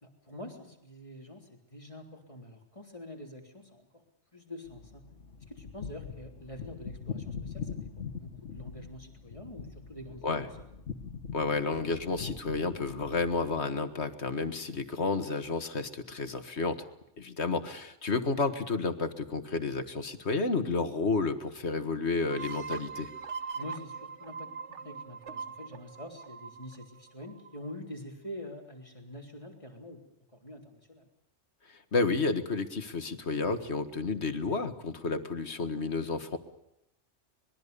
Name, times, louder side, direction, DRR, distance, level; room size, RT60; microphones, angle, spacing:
voice 1, 0.0-4.0 4.3-5.0 5.5-10.5 23.5-30.0 30.3-31.1, left 1 dB, 25° left, 2 dB, 3.6 m, -46 dB
sound 1, 4.7-13.6, left 6 dB, 85° left, 1.8 m, -42 dB
voice 2, 11.3-16.8 17.2-23.1 31.7-36.4, left 3 dB, 65° left, 9 dB, 2.0 m, -31 dB
sound 2, 22.3-27.7, right 5 dB, 80° right, 1.4 m, -41 dB
26.0 x 21.5 x 6.9 m, 0.81 s
omnidirectional pair, 1.2 m